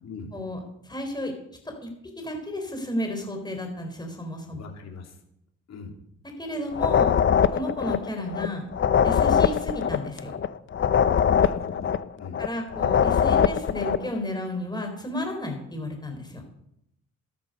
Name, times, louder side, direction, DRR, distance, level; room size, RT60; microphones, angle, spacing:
voice 1, 0.0-0.4 4.5-5.2 5.7-6.0 11.3-12.4, left 4 dB, 60° left, 2 dB, 3.4 m, -42 dB
voice 2, 0.8-1.3 1.6-1.9 2.2-4.6 6.4-7.1 7.5-8.7 9.0-10.3 12.4-16.4, left 1 dB, 15° left, 3 dB, 4.4 m, -32 dB
sound 1, 6.7-14.1, left 8 dB, 40° left, 0.7 m, -22 dB
12.5 x 11.5 x 5.4 m, 0.78 s
cardioid pair, 90°, 30 cm